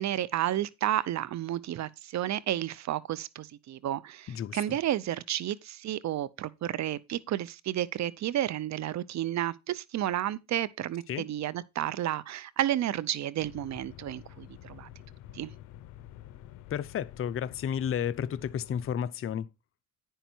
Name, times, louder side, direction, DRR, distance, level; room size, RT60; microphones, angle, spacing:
voice 1, 0.0-14.9 15.3-15.5, right 12 dB, 65° right, 0.6 m, -31 dB
voice 2, 4.3-4.6 11.1-11.3 16.7-19.5, left 9 dB, 45° left, 0.6 m, -32 dB
sound 1, 13.4-19.0, left 12 dB, 85° left, 0.6 m, -49 dB
10.0 x 5.6 x 4.4 m
cardioid pair, 90°, 30 cm